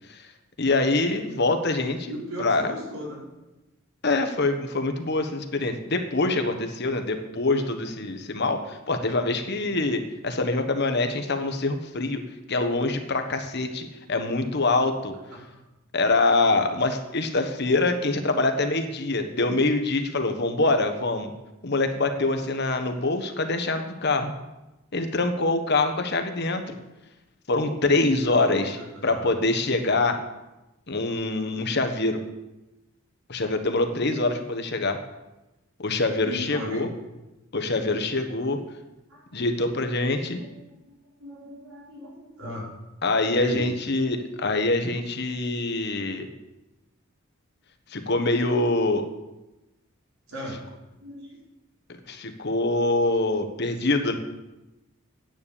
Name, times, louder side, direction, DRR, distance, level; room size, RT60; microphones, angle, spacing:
voice 1, 0.6-2.1 2.4-2.7 4.0-12.2 12.5-15.1 15.9-21.3 21.6-24.3 24.9-26.8 27.5-28.8 29.0-30.2 30.9-32.2 33.3-35.0 35.8-36.9 37.5-38.6 39.3-40.4 43.0-46.3 47.9-49.0 52.1-54.1, left 2 dB, 50° left, 6 dB, 1.2 m, -25 dB
voice 2, 2.1-3.2 9.5-9.7 15.3-15.4 27.9-29.4 31.0-31.2 36.2-36.8 39.1-39.5 40.4-42.7 43.3-43.7 50.3-50.6 51.0-51.4, equal, 85° right, -3 dB, 4.6 m, -38 dB
10.0 x 9.1 x 7.1 m, 1.0 s
head